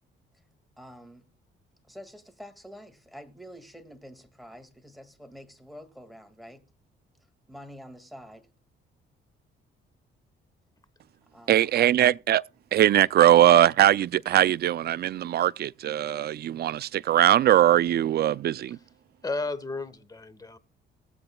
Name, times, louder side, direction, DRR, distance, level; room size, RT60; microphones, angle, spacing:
voice 1, 0.8-1.2 1.8-6.6 7.5-8.5 11.3-11.9 13.1-13.3, equal, ahead, 2.0 m, -47 dB
voice 2, 11.5-12.4 12.7-18.8, right 12 dB, 55° right, 0.4 m, -21 dB
voice 3, 19.2-20.6, left 3 dB, 20° left, 1.2 m, -33 dB
20.5 x 8.0 x 2.2 m
cardioid pair, 90°, 20 cm